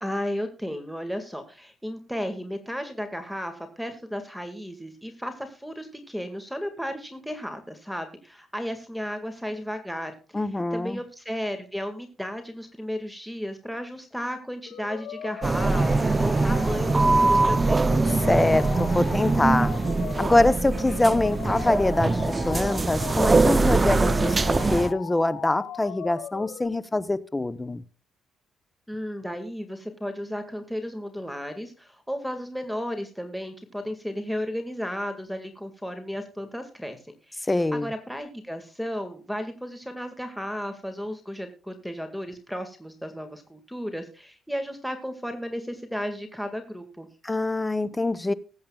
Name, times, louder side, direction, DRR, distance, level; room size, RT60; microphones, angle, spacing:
voice 1, 0.0-10.1 10.7-17.8 28.9-37.0 37.3-47.1, equal, ahead, 6 dB, 2.0 m, -34 dB
voice 2, 10.3-11.0 18.3-19.7 20.2-27.8 37.5-37.9 47.2-48.3, left 2 dB, 15° left, 15 dB, 0.9 m, -24 dB
sound 1, 14.7-26.6, left 9 dB, 75° left, 2.5 m, -39 dB
sound 2, 15.4-24.9, right 3 dB, 25° right, 0.6 m, -22 dB
20.0 x 8.5 x 2.4 m, 0.38 s
cardioid pair, 90°, 0 cm